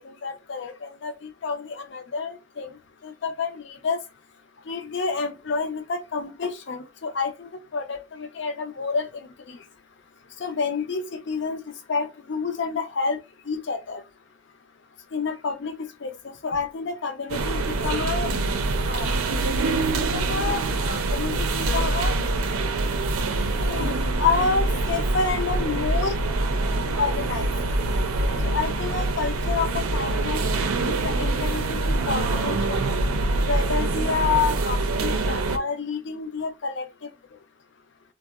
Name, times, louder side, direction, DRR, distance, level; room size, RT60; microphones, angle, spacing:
voice 1, 0.0-4.0 4.7-9.6 10.4-11.6 11.9-13.2 13.5-14.0 15.1-18.3 18.9-19.2 20.0-22.2 23.6-26.2 27.0-27.5 28.4-30.4 30.8-32.9 33.4-37.1, left 5 dB, 55° left, 0.5 m, -29 dB
sound 1, 17.3-35.6, right 2 dB, 90° right, 0.5 m, -25 dB
3.5 x 2.0 x 2.3 m
head